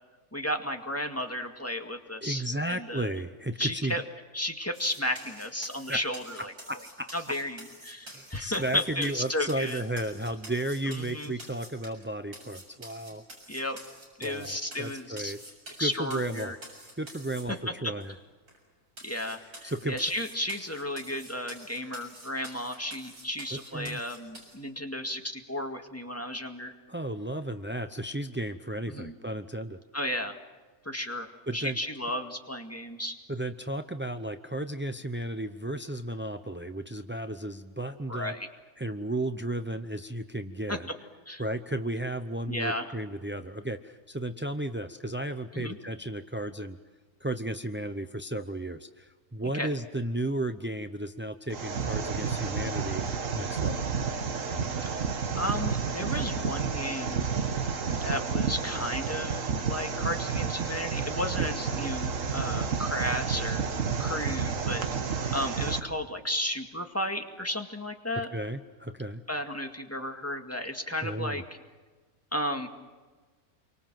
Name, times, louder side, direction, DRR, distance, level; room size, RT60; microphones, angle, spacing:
voice 1, 0.3-3.1 3.6-4.0 4.3-6.5 7.1-9.8 10.9-11.3 13.5-13.8 14.2-15.3 15.8-16.6 17.8-18.1 19.0-26.7 28.9-29.1 29.9-30.4 30.8-33.1 38.1-38.5 40.7-40.8 41.3-41.4 42.5-42.9 45.5-45.8 49.5-49.7 54.8-54.9 55.4-57.3 58.0-63.7 64.0-64.8 65.3-68.3 69.3-71.4 72.3-72.7, left 1 dB, 10° left, 4 dB, 2.0 m, -33 dB
voice 2, 2.2-4.0 5.9-6.0 6.7-7.1 8.1-13.2 14.2-15.4 15.8-16.5 16.9-18.2 19.6-20.0 23.5-24.0 26.9-29.8 31.5-31.8 33.3-38.4 38.8-40.9 41.4-46.8 47.2-53.0 53.3-53.9 68.3-69.2 71.0-71.4, right 1 dB, 20° right, 8 dB, 0.3 m, -34 dB
sound 1, 4.7-12.0 12.3-17.4 18.0-18.1 18.5-18.6 19.0-24.6, right 1 dB, 85° right, 7.7 m, -47 dB
sound 2, 51.5-65.8, right 5 dB, 55° right, 1.8 m, -30 dB
28.5 x 24.0 x 7.6 m, 1.4 s
omnidirectional pair, 1.6 m